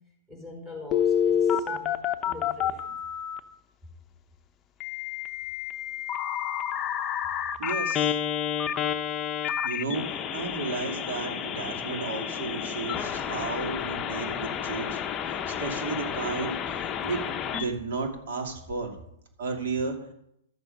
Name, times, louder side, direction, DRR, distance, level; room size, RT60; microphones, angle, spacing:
voice 1, 0.3-1.9 2.2-3.0, left 2 dB, 15° right, 0 dB, 4.5 m, -43 dB
Telephone, 0.9-3.4 4.8-17.6, left 9 dB, 20° left, 0.7 m, -29 dB
voice 2, 7.6-8.2 9.6-15.0 15.3-17.3 17.6-19.0 19.4-20.1, right 4 dB, 65° right, 2 dB, 2.5 m, -33 dB
12.5 x 7.2 x 5.3 m, 0.76 s
hypercardioid pair, 145°, 0 cm